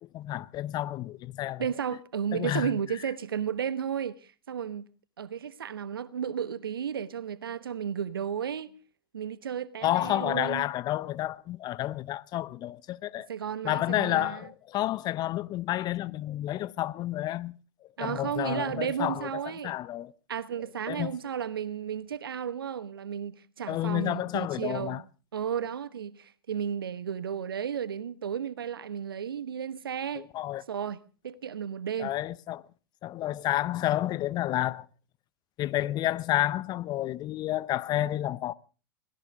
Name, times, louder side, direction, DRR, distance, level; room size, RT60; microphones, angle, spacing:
voice 1, 0.0-1.7 2.3-2.7 9.8-13.3 13.6-17.6 18.0-20.1 20.9-21.2 23.7-25.0 30.1-30.6 32.0-32.7 33.0-34.9 35.6-38.5, left 14 dB, 35° left, 0.7 m, -30 dB
voice 2, 1.6-4.2 4.5-4.8 5.2-8.7 9.1-10.7 13.3-14.4 18.0-19.7 20.3-25.0 25.3-30.3 30.7-32.1, right 8 dB, 75° right, 1.1 m, -33 dB
22.5 x 17.0 x 3.6 m
figure-of-eight pair, 90°, 12 cm